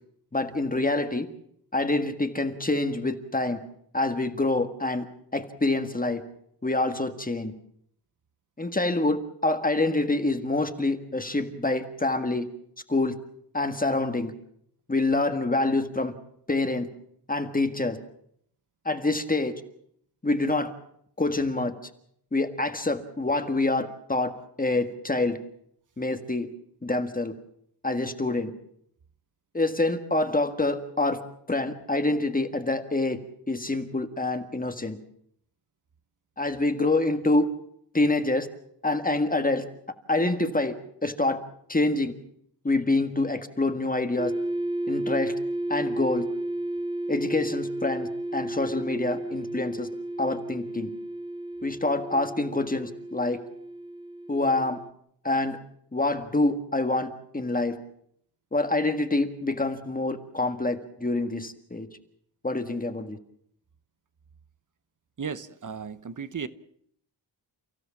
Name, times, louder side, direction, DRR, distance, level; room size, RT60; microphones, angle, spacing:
voice 1, 0.3-1.3 1.7-3.6 3.9-5.0 5.3-6.2 6.6-7.5 8.6-12.5 12.9-13.2 13.5-14.3 14.9-16.1 16.5-16.9 17.3-18.0 18.8-19.5 20.2-20.7 21.2-21.9 22.3-24.3 24.6-25.4 26.0-26.5 26.8-27.3 27.8-28.5 29.5-31.2 31.5-33.2 33.5-35.0 36.4-37.5 37.9-38.5 38.8-39.7 40.1-40.7 41.0-41.4 41.7-42.1 42.6-44.3 44.9-45.3 45.7-46.3 47.1-49.9 50.2-50.9 51.6-53.4 54.3-54.8 55.2-55.6 55.9-57.8 58.5-61.9 62.4-63.2, left 2 dB, 20° left, 7 dB, 1.7 m, -26 dB
sound 1, 44.2-54.9, right 1 dB, 10° right, 0.8 m, -33 dB
voice 2, 65.2-66.5, right 6 dB, 45° right, 14 dB, 1.1 m, -35 dB
30.0 x 16.0 x 7.3 m, 0.69 s
wide cardioid pair, 165°, 44 cm